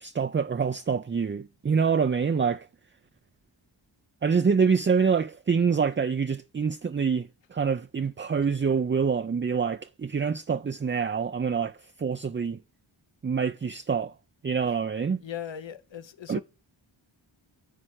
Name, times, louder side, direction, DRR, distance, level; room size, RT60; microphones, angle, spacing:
voice 1, 0.0-2.7 4.2-12.6 13.2-14.1 14.4-15.2 16.3-16.4, right 6 dB, 25° right, 0.5 m, -26 dB
voice 2, 15.2-16.4, left 9 dB, 65° left, 1.0 m, -38 dB
10.0 x 4.3 x 6.3 m
cardioid pair, 45°, 47 cm